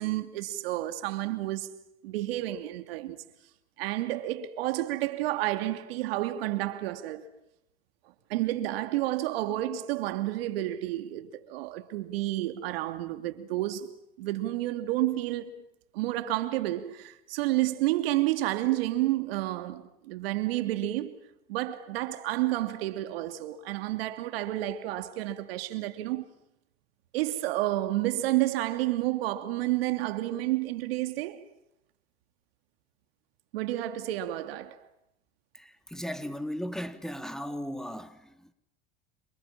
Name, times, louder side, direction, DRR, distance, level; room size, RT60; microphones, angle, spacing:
voice 1, 0.0-1.7 2.0-3.2 3.8-7.2 8.3-13.9 14.2-15.5 15.9-21.2 21.5-26.2 27.1-31.4 33.5-34.8, right 15 dB, 90° right, 2.9 m, -30 dB
voice 2, 35.5-38.5, equal, ahead, 3.0 m, -37 dB
30.0 x 26.5 x 7.4 m
supercardioid pair, 100°, 29 cm